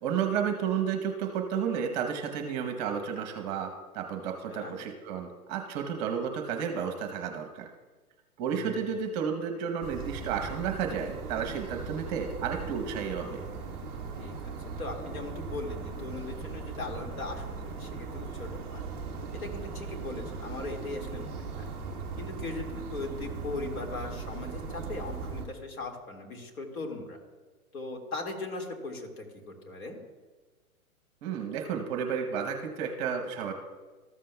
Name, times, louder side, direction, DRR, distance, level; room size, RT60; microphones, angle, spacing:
voice 1, 0.0-7.7 8.4-13.4 31.2-33.5, right 7 dB, 30° right, 4 dB, 0.9 m, -32 dB
voice 2, 4.5-4.8 8.4-8.8 14.2-18.8 19.3-21.7 22.2-27.2 27.7-30.0, left 3 dB, 75° left, 1 dB, 2.1 m, -39 dB
sound 1, 9.8-25.5, right 5 dB, 5° right, 0.3 m, -39 dB
14.0 x 7.4 x 2.3 m, 1.3 s
hypercardioid pair, 135°, 43 cm